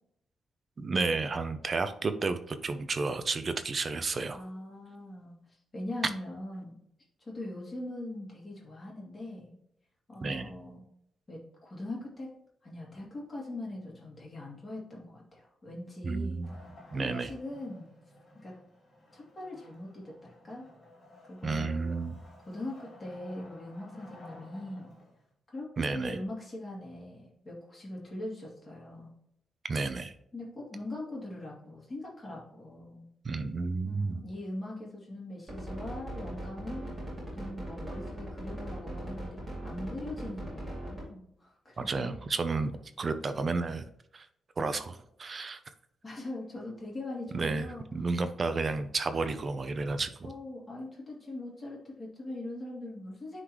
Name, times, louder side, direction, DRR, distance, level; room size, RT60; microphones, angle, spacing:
voice 1, 0.8-4.4 10.2-10.5 16.0-16.5 16.9-17.3 21.4-22.2 25.8-26.2 29.7-30.1 33.2-34.2 41.8-42.7 43.0-43.8 44.1-44.3 44.6-45.6 47.3-47.7 47.9-50.3, right 3 dB, 30° right, 10 dB, 0.5 m, -31 dB
voice 2, 4.3-5.4 5.7-6.8 7.2-9.6 10.1-10.8 11.3-12.3 12.6-16.4 16.9-17.9 18.3-18.5 19.1-20.7 21.3-22.0 22.5-24.9 25.5-29.1 30.3-33.1 33.8-36.9 37.3-42.2 46.0-47.8 50.2-53.4, left 1 dB, 20° left, -4 dB, 2.3 m, -41 dB
Wood, 16.4-25.3, left 1 dB, 35° left, 2.4 m, -54 dB
sound 1, 35.5-41.0, right 1 dB, 15° right, 2.6 m, -39 dB
9.7 x 3.9 x 3.0 m, 0.74 s
wide cardioid pair, 180°, 0 cm